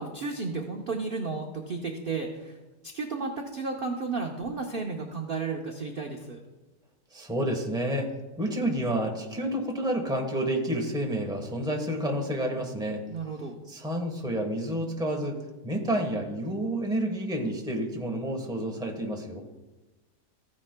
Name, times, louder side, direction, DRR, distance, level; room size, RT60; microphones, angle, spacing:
voice 1, 0.0-2.6 2.8-6.4 13.1-13.6, right 4 dB, 55° right, 2 dB, 0.6 m, -33 dB
voice 2, 7.1-13.0 13.7-15.4 15.6-19.4, right 1 dB, 5° right, 2 dB, 0.8 m, -29 dB
14.5 x 9.9 x 2.2 m, 1.2 s
omnidirectional pair, 1.9 m